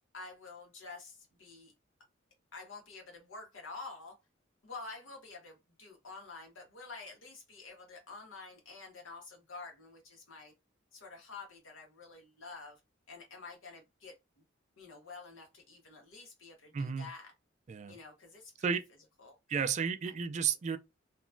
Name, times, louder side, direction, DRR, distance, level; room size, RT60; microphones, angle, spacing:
voice 1, 0.1-1.7 2.5-4.2 4.6-10.5 10.9-12.8 13.1-14.2 14.8-17.3 17.9-18.5 19.2-19.7 20.0-20.1, left 3 dB, 85° left, 1.1 m, -49 dB
voice 2, 16.7-17.1 17.7-18.0 18.6-18.9 19.5-20.8, right 6 dB, 35° right, 0.3 m, -32 dB
2.9 x 2.2 x 2.4 m
head